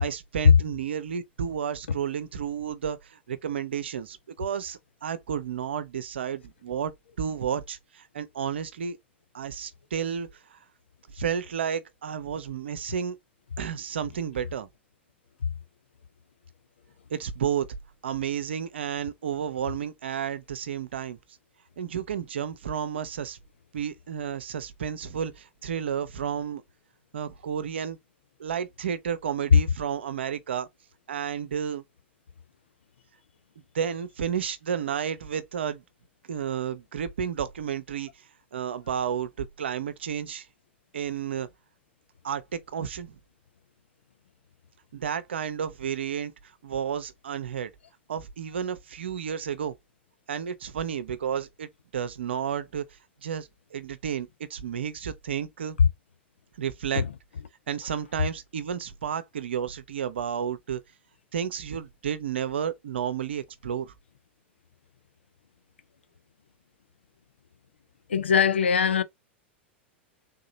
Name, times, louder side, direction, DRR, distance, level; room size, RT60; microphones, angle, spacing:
voice 1, 0.0-6.9 7.2-9.0 9.3-10.6 11.1-13.2 13.6-14.7 17.1-17.7 18.0-21.2 21.8-23.4 23.7-26.6 27.1-28.0 28.4-30.7 31.1-31.8 33.7-35.8 36.3-38.1 38.5-40.5 40.9-41.5 42.2-43.2 44.9-46.3 46.6-47.7 48.1-49.7 50.3-52.8 53.2-55.8 56.6-57.0 57.7-60.8 61.3-63.9, right 8 dB, 70° right, 0.6 m, -31 dB
voice 2, 68.1-69.0, left 7 dB, 75° left, 0.5 m, -22 dB
3.6 x 2.8 x 2.7 m
figure-of-eight pair, 90°, 6 cm